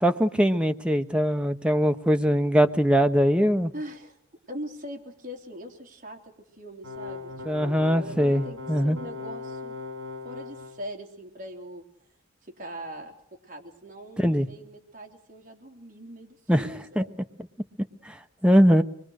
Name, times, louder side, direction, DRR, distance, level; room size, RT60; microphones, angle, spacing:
voice 1, 0.0-3.7 7.4-9.0 14.2-14.5 16.5-17.0 18.0-18.2 18.4-18.8, equal, 5° right, 7 dB, 0.9 m, -21 dB
voice 2, 3.7-4.2 4.5-6.2 6.6-8.6 8.8-9.8 10.2-11.8 12.4-13.1 13.5-17.2, equal, 40° right, 1 dB, 3.6 m, -41 dB
sound 1, 6.8-10.7, left 3 dB, 70° right, 6.1 m, -38 dB
24.5 x 22.0 x 6.5 m, 0.67 s
head